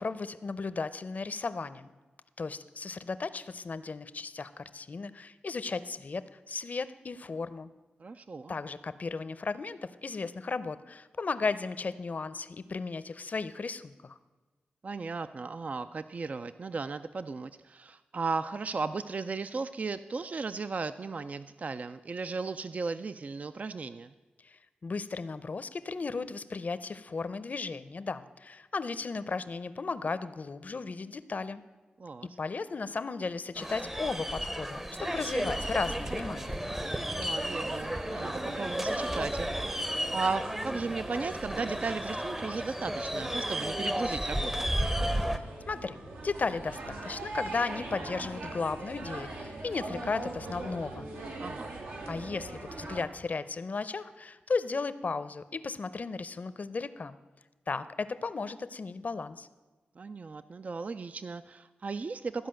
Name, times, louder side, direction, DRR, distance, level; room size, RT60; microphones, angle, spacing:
voice 1, 0.0-1.9 2.4-7.7 8.5-14.2 24.4-31.6 32.4-36.6 45.3-51.1 52.1-57.2 57.7-59.5, left 4 dB, 50° left, 14 dB, 0.6 m, -35 dB
voice 2, 8.0-8.5 14.8-24.1 32.0-32.4 37.1-44.7 51.4-51.7 60.0-62.5, right 4 dB, 45° right, 12 dB, 0.3 m, -36 dB
sound 1, 33.6-45.4, equal, 10° right, 0.7 m, -33 dB
sound 2, 35.0-53.1, right 2 dB, 80° right, 1.5 m, -42 dB
13.5 x 5.0 x 7.6 m, 1.2 s
cardioid pair, 60°, 3 cm